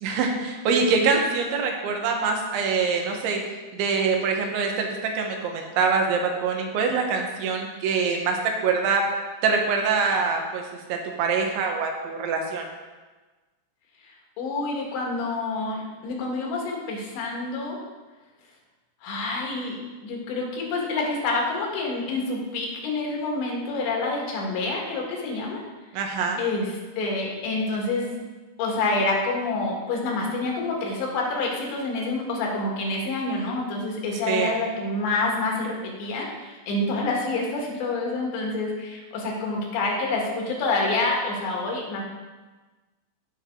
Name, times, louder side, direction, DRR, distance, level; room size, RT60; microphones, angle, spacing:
voice 1, 0.0-3.4 3.7-9.0 9.4-10.6 10.9-12.6 25.9-26.4 34.3-34.5, right 5 dB, 85° right, 2 dB, 3.5 m, -24 dB
voice 2, 14.0-17.8 19.0-25.6 26.4-28.1 28.6-42.1, left 3 dB, 75° left, -1 dB, 3.8 m, -27 dB
16.0 x 5.7 x 3.7 m, 1.3 s
omnidirectional pair, 5.2 m